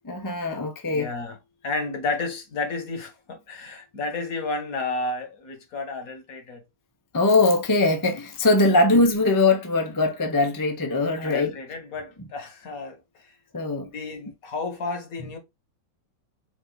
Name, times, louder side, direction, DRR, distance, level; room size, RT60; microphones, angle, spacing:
voice 1, 0.0-1.1 7.1-11.5 13.5-13.9, left 2 dB, 35° left, 0.3 m, -21 dB
voice 2, 0.9-1.4 1.6-6.6 11.2-13.0 13.2-13.3 13.9-15.4, left 3 dB, 55° left, 1.4 m, -32 dB
4.9 x 2.7 x 3.8 m
omnidirectional pair, 1.9 m